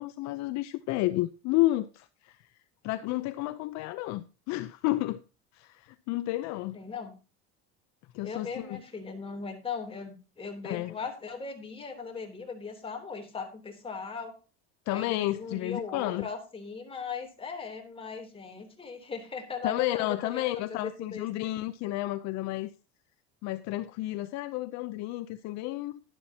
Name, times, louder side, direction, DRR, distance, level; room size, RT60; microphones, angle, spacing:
voice 1, 0.0-2.4 2.8-5.2 5.5-6.8 8.1-8.8 10.6-10.9 14.9-16.3 19.6-22.7 23.4-26.0, left 17 dB, 60° left, 0.7 m, -31 dB
voice 2, 6.7-7.1 8.2-14.3 14.9-21.3, left 5 dB, 15° left, 3.3 m, -38 dB
11.5 x 11.5 x 2.8 m
cardioid pair, 135°, 32 cm